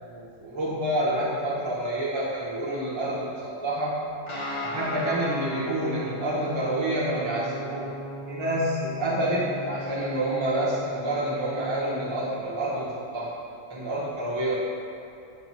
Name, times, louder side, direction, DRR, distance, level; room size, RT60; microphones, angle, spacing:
voice 1, 0.0-4.0 4.6-7.9 8.3-13.3 13.7-14.6, right 1 dB, 30° right, -8 dB, 0.6 m, -28 dB
Guitar, 4.3-12.3, equal, 30° left, 0.6 m, -37 dB
5.6 x 3.1 x 5.3 m, 2.6 s
omnidirectional pair, 1.5 m